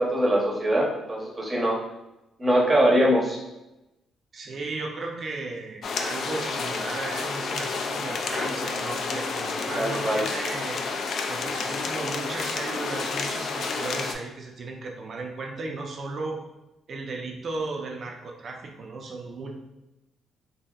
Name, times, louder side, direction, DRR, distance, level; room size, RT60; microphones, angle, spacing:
voice 1, 0.0-1.8 2.4-3.4 9.7-10.2, right 1 dB, 20° right, -3 dB, 0.8 m, -22 dB
voice 2, 4.3-10.8 11.3-16.4 16.9-19.5, right 3 dB, 50° right, 1 dB, 0.5 m, -35 dB
sound 1, 5.8-14.2, left 4 dB, 60° left, 0.3 m, -30 dB
2.8 x 2.6 x 2.3 m, 0.96 s
cardioid pair, 90°, 0 cm